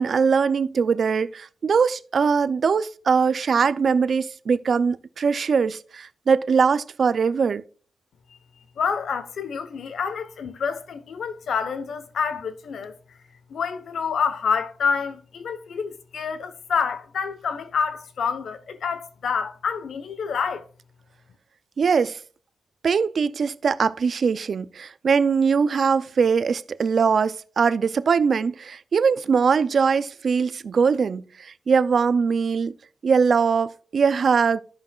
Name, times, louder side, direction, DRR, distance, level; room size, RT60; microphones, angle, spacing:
voice 1, 0.0-7.6 21.8-22.2 22.8-32.7 33.0-34.6, right 5 dB, 55° right, 0.4 m, -21 dB
voice 2, 8.8-13.0 13.5-20.6, left 6 dB, 75° left, 1.0 m, -28 dB
15.0 x 5.5 x 2.4 m
cardioid pair, 95°, 0 cm